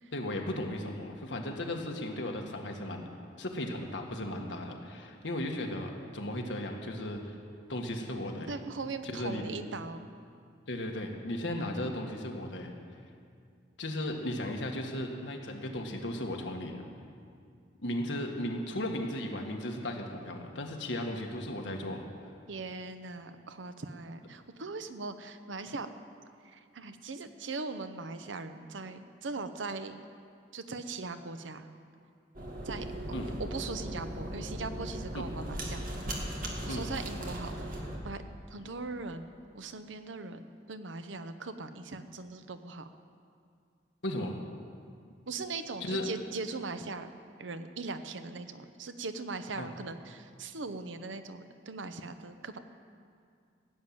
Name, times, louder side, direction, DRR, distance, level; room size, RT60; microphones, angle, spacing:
voice 1, 0.1-3.1 3.4-7.4 7.7-8.5 9.0-9.5 10.7-12.7 13.8-16.8 17.8-22.0 33.1-33.3 35.1-35.2 36.7-36.9 44.0-44.4 45.8-46.1 49.6-49.7, left 1 dB, 75° left, 2 dB, 1.6 m, -36 dB
voice 2, 8.5-10.1 22.5-25.9 26.4-30.0 30.5-31.7 32.6-37.7 38.0-38.2 38.5-42.9 45.3-47.1 47.4-52.6, right 3 dB, 90° right, 9 dB, 0.8 m, -40 dB
sound 1, 32.3-38.0, equal, 50° right, 2.1 m, -38 dB
16.0 x 7.3 x 9.3 m, 2.3 s
head